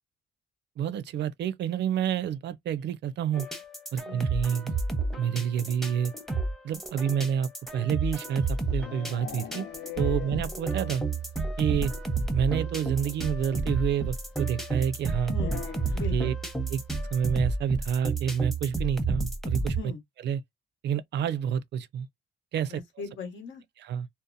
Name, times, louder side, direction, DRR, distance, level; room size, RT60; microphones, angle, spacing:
voice 1, 0.8-3.5 3.9-4.8 5.2-6.1 6.6-9.7 10.0-11.0 11.6-11.9 12.3-15.3 16.1-16.3 16.7-16.8 17.1-19.8 20.2-20.4 20.8-22.1 22.5-22.8 23.8-24.1, right 8 dB, 60° right, 0.4 m, -28 dB
sound 1, 3.3-19.8, right 3 dB, ahead, 0.7 m, -31 dB
sound 2, 8.1-11.1 11.4-11.5 11.8-11.9 12.2-12.3 13.5-13.6 15.3-16.2, left 10 dB, 55° left, 0.5 m, -41 dB
voice 2, 15.3-15.6 15.9-16.4 19.8-20.0 22.7-23.6, left 4 dB, 75° left, 1.1 m, -39 dB
2.7 x 2.1 x 2.5 m
cardioid pair, 90°, 20 cm